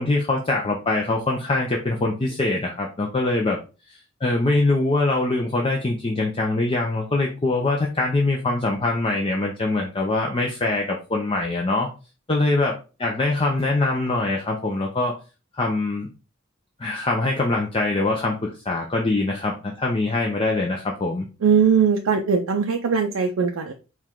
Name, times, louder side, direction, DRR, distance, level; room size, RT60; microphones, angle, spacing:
voice 1, 0.0-3.6 3.9-11.9 12.3-15.2 15.5-16.1 16.8-21.3, left 2 dB, 25° left, 0 dB, 0.5 m, -23 dB
voice 2, 21.4-23.7, right 6 dB, 80° right, 3 dB, 0.5 m, -20 dB
4.6 x 2.4 x 3.6 m, 0.32 s
head